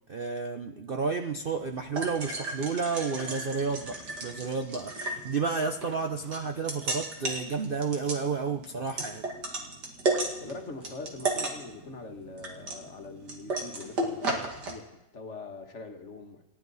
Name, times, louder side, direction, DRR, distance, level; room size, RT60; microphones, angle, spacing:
voice 1, 0.1-4.0 4.2-9.3, right 5 dB, 45° right, 4 dB, 0.7 m, -31 dB
sound 1, 1.4-14.7, right 2 dB, 70° right, 2.8 m, -35 dB
voice 2, 10.4-16.4, left 3 dB, 45° left, 4 dB, 1.7 m, -43 dB
28.5 x 11.5 x 4.1 m, 0.94 s
omnidirectional pair, 1.9 m